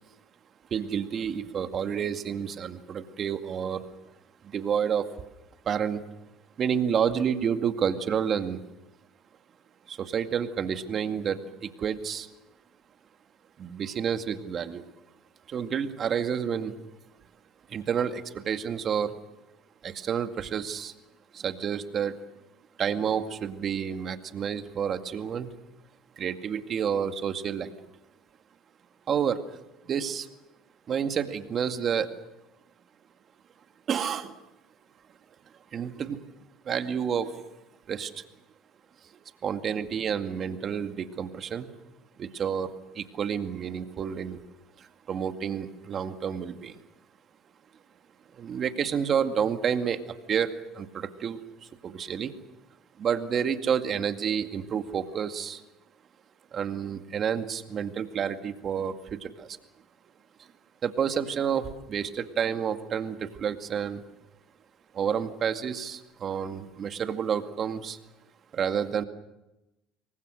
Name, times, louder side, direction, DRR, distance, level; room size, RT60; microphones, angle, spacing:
voice 1, 0.7-3.8 4.5-5.0 5.7-6.0 6.6-8.6 9.9-12.3 13.6-14.8 15.5-16.7 17.7-19.1 19.8-20.9 21.3-22.2 22.8-25.5 26.2-27.7 29.1-29.4 29.9-30.3 30.9-32.1 33.9-34.3 35.7-36.2 36.7-37.3 37.9-38.1 39.4-41.7 42.2-42.7 43.0-44.4 45.1-46.7 48.4-50.0 50.3-51.4 51.8-52.3 53.0-55.6 56.5-58.9 59.2-59.5 60.8-64.0 65.0-68.0 68.5-69.0, right 7 dB, 45° right, 7 dB, 2.1 m, -29 dB
28.5 x 23.0 x 6.5 m, 0.95 s
hypercardioid pair, 80°, 0 cm